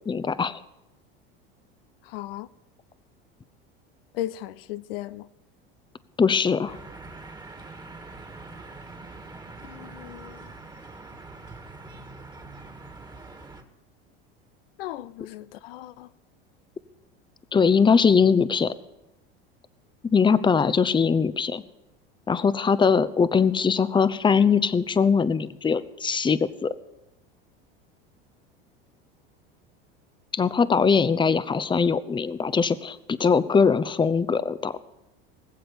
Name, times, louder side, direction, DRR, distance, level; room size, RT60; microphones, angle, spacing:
voice 1, 0.1-0.6 6.2-6.7 17.5-18.7 20.0-21.6 22.3-26.7 30.3-34.8, left 5 dB, 15° left, 0.7 m, -21 dB
voice 2, 2.0-2.5 4.1-5.3 9.6-10.5 14.8-16.1, left 14 dB, 75° left, 0.6 m, -36 dB
sound 1, 6.7-13.6, right 3 dB, 15° right, 1.8 m, -43 dB
20.0 x 7.7 x 7.1 m
hypercardioid pair, 85°, 30 cm